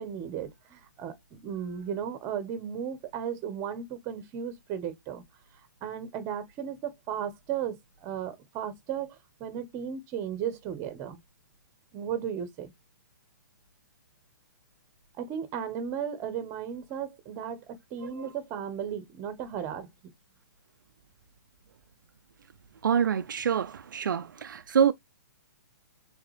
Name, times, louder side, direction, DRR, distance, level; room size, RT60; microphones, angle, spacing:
voice 1, 0.0-5.2 5.8-11.2 11.9-12.7 15.2-19.9, right 8 dB, 25° right, 1.0 m, -35 dB
voice 2, 22.8-24.9, right 8 dB, 80° right, 0.4 m, -26 dB
3.7 x 3.5 x 3.2 m
hypercardioid pair, 140°, 10 cm